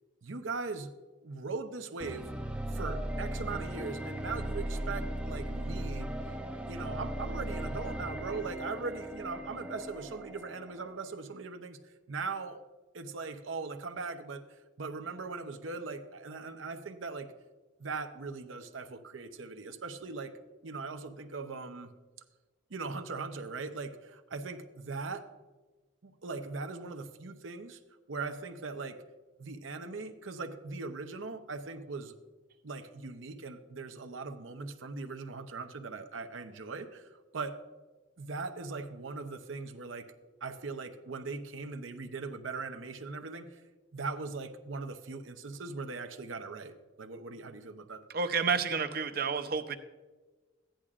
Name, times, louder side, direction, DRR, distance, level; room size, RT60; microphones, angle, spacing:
voice 1, 0.2-0.9 1.2-2.3 2.7-6.1 6.7-12.6 12.9-14.4 14.8-17.3 17.8-20.3 20.6-21.9 22.7-25.3 26.0-27.8 28.1-29.0 29.4-32.1 32.6-37.6 38.2-40.1 40.4-43.6 43.9-48.0, right 4 dB, 85° right, 7 dB, 0.8 m, -40 dB
sound 1, 2.0-11.1, right 1 dB, 5° right, 0.5 m, -37 dB
voice 2, 48.1-49.8, right 5 dB, 50° right, 9 dB, 0.6 m, -30 dB
14.5 x 10.0 x 2.5 m, 1.3 s
head